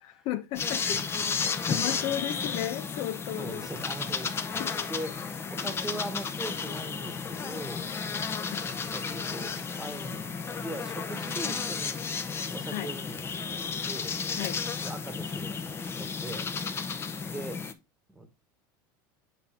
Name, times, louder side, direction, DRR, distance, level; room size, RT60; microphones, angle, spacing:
voice 1, 0.0-3.7 4.6-4.7 5.6-5.7 8.4-8.8 12.6-12.9 14.3-14.6, left 12 dB, 55° left, 1.1 m, -35 dB
sound 1, 0.6-17.7, left 5 dB, 20° left, 0.9 m, -33 dB
voice 2, 0.9-1.2 1.9-2.1 3.4-5.1 5.5-7.9 8.9-12.0 12.5-14.2 14.8-16.5 17.3-17.6 18.1-18.3, right 1 dB, 5° right, 1.5 m, -41 dB
8.2 x 4.1 x 4.4 m
supercardioid pair, 130°, 11 cm